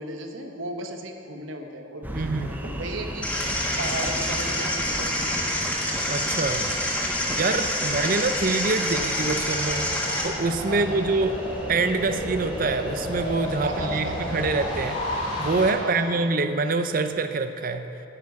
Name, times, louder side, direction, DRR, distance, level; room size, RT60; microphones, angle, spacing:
voice 1, 0.0-3.3 3.8-5.4 7.8-8.0 10.7-11.1 13.6-14.4 15.8-16.2, right 1 dB, 75° right, 4 dB, 1.2 m, -35 dB
sound 1, 2.0-14.9, right 1 dB, 10° right, 0.7 m, -36 dB
voice 2, 2.1-2.6 6.1-6.8 7.3-9.9 10.2-11.4 11.7-17.9, right 3 dB, 45° right, 9 dB, 0.6 m, -25 dB
sound 2, 3.2-10.2, left 1 dB, 5° left, 1.5 m, -27 dB
sound 3, 8.1-15.7, left 1 dB, 30° left, 2.4 m, -33 dB
9.9 x 7.3 x 9.3 m, 2.8 s
head